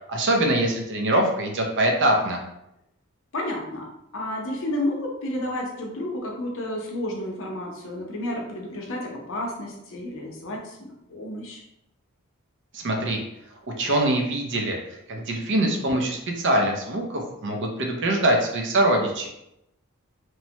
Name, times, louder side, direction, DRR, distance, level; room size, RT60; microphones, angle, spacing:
voice 1, 0.1-2.4 12.7-13.2 13.8-14.8 15.1-19.3, right 1 dB, 55° right, 1 dB, 0.6 m, -23 dB
voice 2, 3.3-3.9 4.1-11.6, left 1 dB, 65° left, 0 dB, 0.7 m, -31 dB
3.0 x 2.1 x 2.8 m, 0.83 s
head